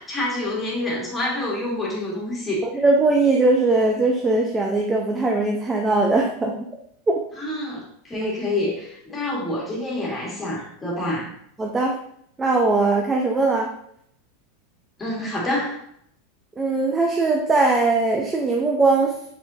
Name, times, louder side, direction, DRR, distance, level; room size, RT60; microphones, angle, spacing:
voice 1, 0.0-2.7 7.4-11.3 15.0-15.8, left 1 dB, 15° left, -3 dB, 1.4 m, -27 dB
voice 2, 2.6-6.6 7.1-7.2 8.1-8.3 11.6-12.0 12.4-13.7 16.6-19.2, right 3 dB, 15° right, 1 dB, 0.5 m, -20 dB
5.0 x 3.6 x 2.7 m, 0.71 s
supercardioid pair, 145°, 0 cm